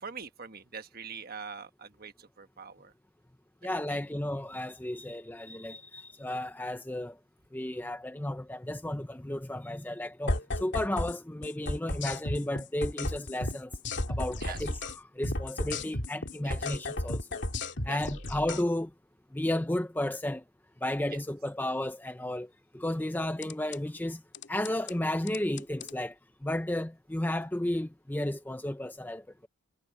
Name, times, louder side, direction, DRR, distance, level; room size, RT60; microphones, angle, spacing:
voice 1, 0.0-2.9 3.6-4.0 14.4-14.6 16.4-16.6 17.8-18.0, right 6 dB, 45° right, 1.4 m, -43 dB
voice 2, 3.6-7.2 7.5-13.7 14.1-17.4 17.8-18.9 19.3-20.4 20.8-24.2 24.5-26.2 26.4-29.3, left 1 dB, 10° left, 0.5 m, -33 dB
sound 1, 10.3-11.2 11.4-15.0 15.2-18.6 23.4-23.8 24.3-24.9 25.3-25.9, left 2 dB, 50° left, 2.8 m, -33 dB
head